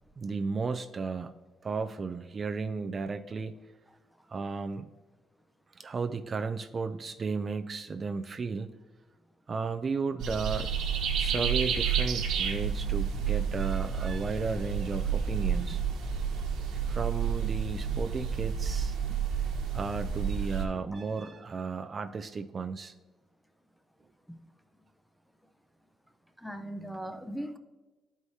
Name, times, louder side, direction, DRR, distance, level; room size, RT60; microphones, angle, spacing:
voice 1, 0.2-1.3 1.6-3.5 4.3-4.9 5.7-8.7 9.5-10.7 11.1-15.8 16.9-19.0 19.7-22.9, right 4 dB, 40° right, 8 dB, 0.3 m, -34 dB
sound 1, 10.2-20.6, right 7 dB, 85° right, 1.1 m, -30 dB
voice 2, 26.4-27.6, equal, 5° left, 8 dB, 0.6 m, -38 dB
11.0 x 4.7 x 2.8 m, 1.2 s
cardioid pair, 90°, 0 cm